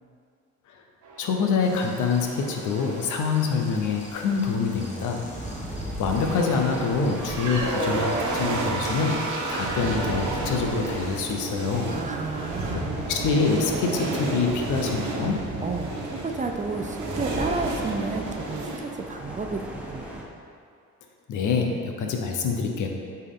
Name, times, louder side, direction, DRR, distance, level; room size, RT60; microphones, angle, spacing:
sound 1, 1.0-3.4 6.0-18.8, right 2 dB, 80° right, 1.3 m, -31 dB
voice 1, 1.2-5.3 6.0-11.9 12.4-12.8 13.1-15.4 21.3-22.9, left 5 dB, 80° left, 3 dB, 0.9 m, -26 dB
sound 2, 1.6-12.0, equal, 25° left, 1.6 m, -46 dB
sound 3, 3.8-20.2, right 1 dB, 5° right, 1.2 m, -39 dB
voice 2, 11.9-13.0 15.6-20.1, right 4 dB, 25° right, 4 dB, 0.5 m, -32 dB
8.2 x 4.5 x 3.7 m, 2.3 s
cardioid pair, 90°, 30 cm